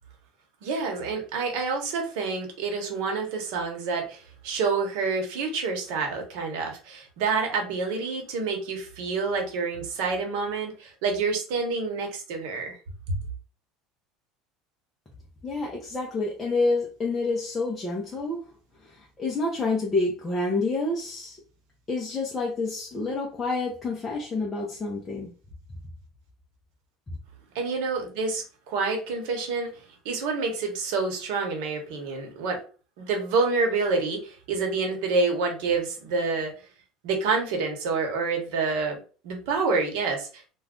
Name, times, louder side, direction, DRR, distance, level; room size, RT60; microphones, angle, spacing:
voice 1, 0.6-12.8 13.1-13.2 27.5-32.6 33.0-36.5 37.0-40.5, right 4 dB, 70° right, 2 dB, 1.0 m, -28 dB
voice 2, 15.4-18.4 19.0-21.4 21.9-25.3, left 3 dB, 15° left, -3 dB, 0.5 m, -28 dB
2.4 x 2.2 x 3.6 m, 0.37 s
cardioid pair, 160°, 0 cm